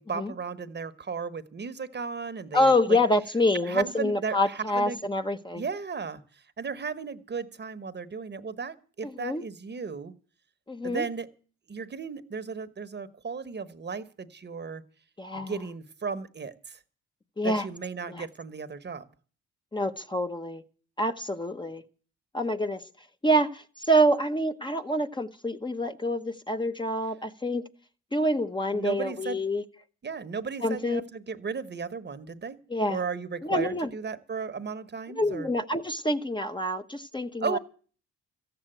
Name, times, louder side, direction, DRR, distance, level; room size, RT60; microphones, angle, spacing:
voice 1, 0.0-3.0 3.6-5.0 5.6-10.1 10.8-11.3 11.7-14.8 15.3-16.8 17.4-19.1 28.7-29.4 30.0-32.6 32.9-35.5 37.4-37.6, right 5 dB, 35° right, 12 dB, 1.1 m, -35 dB
voice 2, 2.5-5.6 9.0-9.4 10.7-11.1 15.2-15.6 17.4-17.7 18.1-18.2 19.7-20.6 21.0-21.8 22.3-22.8 23.2-27.7 28.1-29.6 30.6-31.0 32.7-33.0 33.4-33.9 35.1-37.6, equal, 15° left, 7 dB, 0.9 m, -27 dB
14.0 x 7.8 x 8.9 m, 0.41 s
cardioid pair, 90°, 30 cm